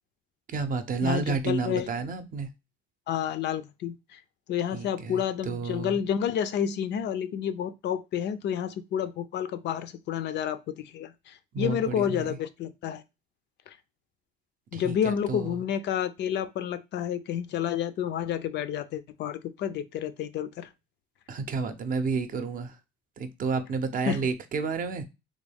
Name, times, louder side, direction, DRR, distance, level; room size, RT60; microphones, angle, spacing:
voice 1, 0.5-2.5 4.7-6.0 11.5-12.4 14.7-15.6 21.3-22.8 23.2-25.0, right 4 dB, 45° right, 0.6 m, -31 dB
voice 2, 1.0-1.9 3.1-4.2 4.5-13.0 13.7-13.8 14.7-20.7 24.1-24.2, left 9 dB, 65° left, 0.4 m, -30 dB
3.6 x 2.2 x 3.4 m
cardioid pair, 120°, 19 cm